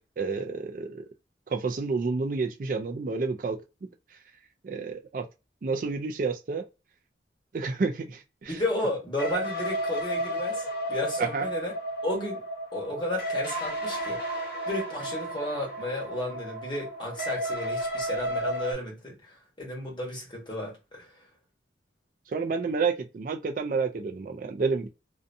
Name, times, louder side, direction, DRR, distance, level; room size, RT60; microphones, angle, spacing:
voice 1, 0.2-1.1 1.5-3.6 4.6-5.2 5.6-6.6 7.5-8.6 11.2-11.5 22.3-24.9, right 4 dB, 45° right, 0.3 m, -29 dB
voice 2, 8.4-11.7 12.0-12.4 12.7-14.2 14.7-21.1, left 1 dB, 25° left, 1.1 m, -33 dB
sound 1, 9.2-18.7, right 1 dB, 55° left, 0.9 m, -32 dB
2.6 x 2.1 x 2.6 m
head